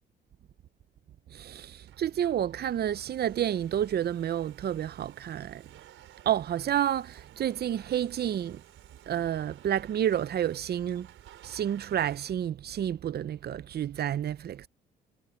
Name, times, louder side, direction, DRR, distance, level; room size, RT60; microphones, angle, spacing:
voice 1, 1.3-5.7 6.3-8.6 9.1-11.1 11.4-14.7, right 10 dB, 55° right, 0.7 m, -30 dB
Domestic sounds home sounds, 1.6-12.3, right 13 dB, 85° right, 4.6 m, -56 dB
cardioid pair, 90°, 20 cm